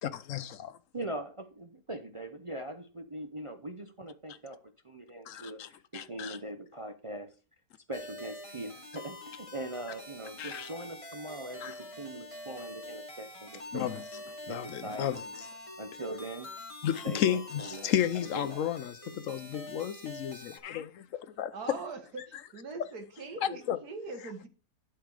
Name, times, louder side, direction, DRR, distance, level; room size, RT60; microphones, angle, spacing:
voice 1, 0.0-0.8 5.3-5.7 5.9-6.4 10.4-10.7 11.6-11.7 13.7-14.0 14.5-15.2 16.8-21.1 21.4-21.8 22.3-22.4 22.8-22.9 23.4-23.8, left 10 dB, 65° left, 0.8 m, -33 dB
voice 2, 0.9-4.6 4.8-7.3 7.9-13.9 14.5-15.2 15.8-16.5 17.0-18.7, right 1 dB, 40° right, 0.4 m, -41 dB
sound 1, 7.9-20.6, left 1 dB, 20° left, 1.6 m, -46 dB
voice 3, 21.5-24.5, right 3 dB, 70° right, 2.1 m, -42 dB
11.5 x 4.6 x 4.8 m
omnidirectional pair, 1.7 m